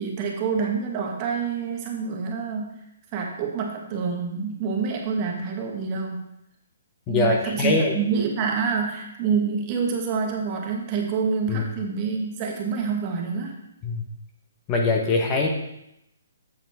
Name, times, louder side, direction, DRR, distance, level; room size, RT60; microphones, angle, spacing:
voice 1, 0.0-2.7 3.1-6.2 7.1-13.6, right 5 dB, 30° right, 1 dB, 1.4 m, -27 dB
voice 2, 7.1-7.9 11.5-11.6 13.8-14.0 14.7-15.5, left 3 dB, 20° left, 1 dB, 1.1 m, -22 dB
8.6 x 6.7 x 3.5 m, 0.84 s
hypercardioid pair, 155°, 0 cm